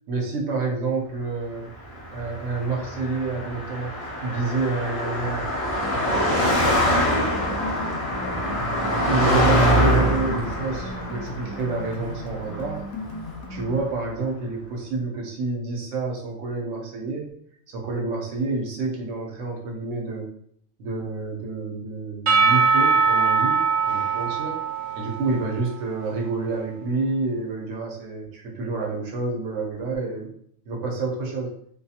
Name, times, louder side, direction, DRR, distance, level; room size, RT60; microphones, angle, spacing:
voice 1, 0.1-1.7 2.1-3.9 4.2-5.4 6.0-7.3 9.0-12.9 13.5-20.3 20.8-23.6 23.9-24.5 24.9-30.3 30.6-31.5, right 3 dB, 70° right, -1 dB, 1.0 m, -28 dB
Car passing by, 1.9-13.4, equal, 45° left, 0.4 m, -24 dB
sound 1, 5.8-13.8, left 2 dB, 75° left, 0.9 m, -37 dB
Percussion / Church bell, 22.3-26.1, right 5 dB, 50° right, 0.6 m, -22 dB
2.6 x 2.4 x 2.7 m, 0.66 s
omnidirectional pair, 1.3 m